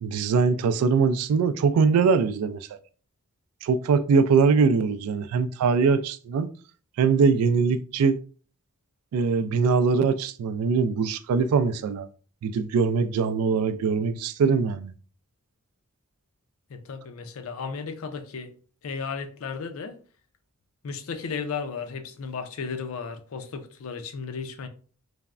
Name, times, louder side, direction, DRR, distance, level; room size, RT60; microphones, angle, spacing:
voice 1, 0.0-2.6 3.6-6.5 7.0-8.2 9.1-12.1 12.4-14.9, right 5 dB, 90° right, 0.3 m, -22 dB
voice 2, 16.7-18.5 18.8-20.0 20.8-24.7, left 5 dB, 70° left, 0.4 m, -34 dB
3.3 x 2.0 x 2.4 m
head